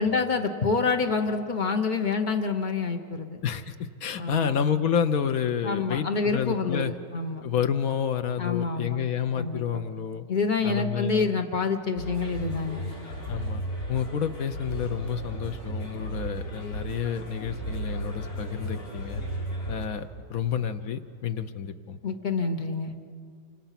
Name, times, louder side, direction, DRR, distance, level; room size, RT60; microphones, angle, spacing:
voice 1, 0.0-3.4 4.2-4.6 5.6-7.4 8.4-9.0 9.3-9.8 10.3-12.9 22.0-22.9, left 4 dB, 35° left, 5 dB, 0.7 m, -27 dB
voice 2, 3.4-3.7 4.0-6.9 7.4-10.2 10.6-11.3 13.3-13.6 13.9-19.2 19.7-22.0, left 8 dB, 65° left, 9 dB, 0.9 m, -29 dB
sound 1, 12.0-19.9, right 1 dB, 85° left, 7.4 m, -35 dB
28.0 x 25.5 x 5.9 m, 2.3 s
omnidirectional pair, 2.2 m